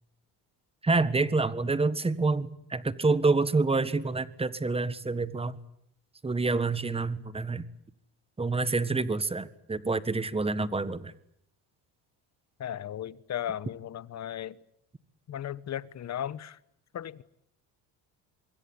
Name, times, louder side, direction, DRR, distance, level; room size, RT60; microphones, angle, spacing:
voice 1, 0.8-5.5 6.2-7.6 8.4-11.1, right 3 dB, 15° right, 1.6 m, -27 dB
voice 2, 12.6-14.6 15.3-16.6 16.9-17.2, left 10 dB, 40° left, 1.2 m, -36 dB
26.0 x 22.0 x 9.8 m
cardioid pair, 115°, 41 cm